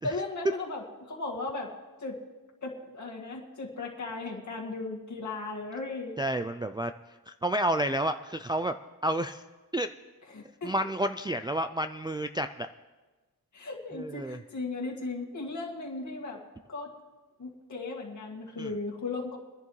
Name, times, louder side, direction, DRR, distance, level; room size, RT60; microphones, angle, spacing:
voice 1, 0.0-1.7 2.0-2.2 2.6-6.2 10.3-10.7 13.5-16.4 16.7-16.9 17.4-19.4, left 3 dB, 55° left, -1 dB, 2.0 m, -36 dB
voice 2, 6.2-6.9 7.4-8.7 9.0-9.4 9.7-9.9 10.6-12.7 13.9-14.4 18.6-18.7, right 1 dB, 15° right, 7 dB, 0.3 m, -30 dB
24.0 x 10.5 x 3.2 m, 1.2 s
wide cardioid pair, 115°, 36 cm